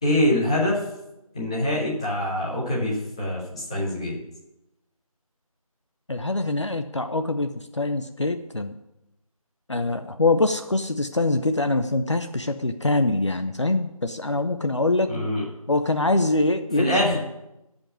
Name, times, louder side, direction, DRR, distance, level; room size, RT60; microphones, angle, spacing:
voice 1, 0.0-0.8 1.3-4.1 15.1-15.5 16.7-17.2, left 1 dB, 10° left, -6 dB, 1.5 m, -24 dB
voice 2, 6.1-8.7 9.7-15.1 15.7-17.2, left 2 dB, 50° left, 7 dB, 0.7 m, -24 dB
14.0 x 5.3 x 9.4 m, 0.90 s
figure-of-eight pair, 170°, 19 cm